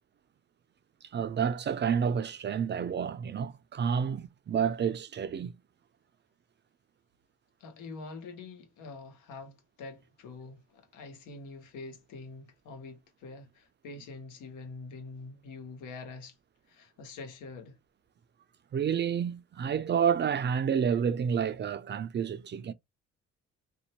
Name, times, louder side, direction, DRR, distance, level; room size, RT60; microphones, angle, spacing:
voice 1, 1.1-5.5 18.7-22.7, right 7 dB, 35° right, 0.4 m, -29 dB
voice 2, 7.6-16.3 16.7-17.8, left 3 dB, 85° left, 1.1 m, -45 dB
2.6 x 2.1 x 2.9 m
cardioid pair, 90°, 30 cm